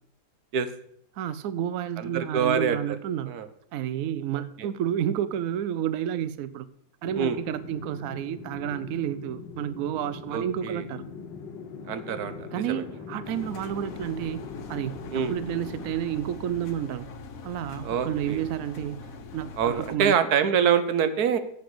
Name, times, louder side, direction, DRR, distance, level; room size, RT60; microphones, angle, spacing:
voice 1, 1.2-3.3 3.7-6.7 7.0-11.0 12.5-14.4 14.7-17.1 17.4-20.2, right 10 dB, 80° right, 14 dB, 0.7 m, -30 dB
voice 2, 2.0-3.0 3.3-3.5 4.6-4.7 7.1-7.4 10.3-10.8 11.9-12.8 15.1-15.3 17.8-18.4 19.6-21.4, right 7 dB, 60° right, 11 dB, 1.2 m, -25 dB
sound 1, 7.0-15.9, left 5 dB, 75° left, 1.7 m, -41 dB
Engine, 13.2-20.0, left 4 dB, 55° left, 1.2 m, -43 dB
8.3 x 6.4 x 7.7 m, 0.71 s
omnidirectional pair, 2.0 m